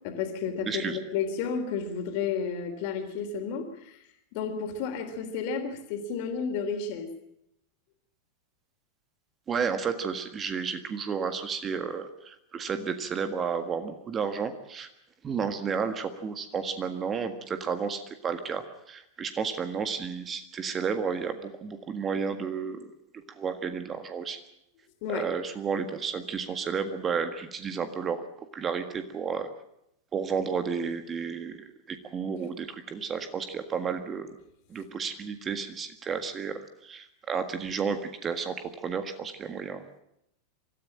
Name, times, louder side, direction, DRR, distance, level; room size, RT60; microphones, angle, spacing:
voice 1, 0.0-4.0 4.3-7.1 25.0-25.2, left 6 dB, 45° left, 6 dB, 3.6 m, -32 dB
voice 2, 0.7-1.0 9.5-14.9 15.2-22.8 23.3-24.4 25.1-28.3 28.5-29.5 30.1-34.3 34.7-39.8, right 6 dB, 25° right, 9 dB, 1.7 m, -32 dB
25.0 x 14.0 x 8.8 m, 0.79 s
figure-of-eight pair, 90°, 0 cm